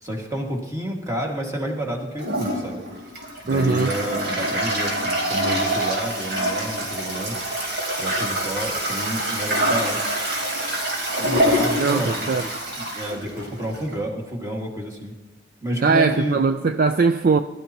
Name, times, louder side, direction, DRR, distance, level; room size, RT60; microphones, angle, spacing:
voice 1, 0.0-2.8 3.4-7.4 8.0-10.0 10.4-10.6 11.2-12.5 12.8-15.1 15.6-16.4, right 1 dB, 20° right, 2.0 m, -30 dB
Toilet flush, 2.2-14.0, right 1 dB, 70° right, 4.0 m, -25 dB
voice 2, 3.5-3.9 11.8-12.4 15.8-17.4, right 4 dB, 50° right, 0.4 m, -20 dB
21.0 x 12.5 x 3.0 m
head